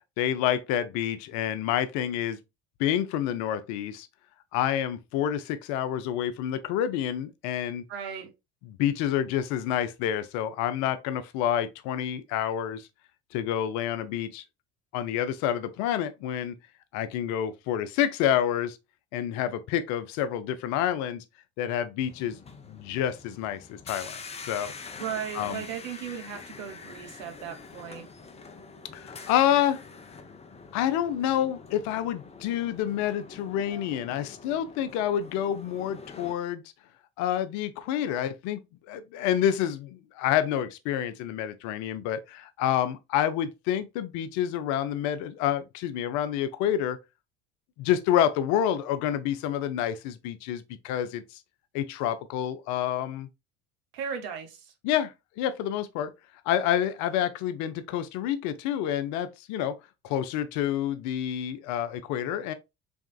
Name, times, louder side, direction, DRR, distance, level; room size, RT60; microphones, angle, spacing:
voice 1, 0.2-2.4 2.8-4.1 4.5-7.8 8.8-12.9 13.3-14.4 14.9-16.5 16.9-18.8 19.1-21.2 21.6-22.4 22.7-24.7 25.3-25.6 28.9-29.8 30.7-36.6 37.2-38.6 38.9-47.0 47.8-51.4 51.7-53.3 54.8-56.1 56.5-59.8 60.0-62.5, left 10 dB, 60° left, 0.6 m, -28 dB
voice 2, 7.9-8.3 25.0-28.1 53.9-54.7, right 8 dB, 70° right, 1.1 m, -36 dB
sound 1, 22.0-36.3, left 4 dB, 20° left, 0.7 m, -45 dB
3.6 x 3.4 x 2.3 m
hypercardioid pair, 70°, 33 cm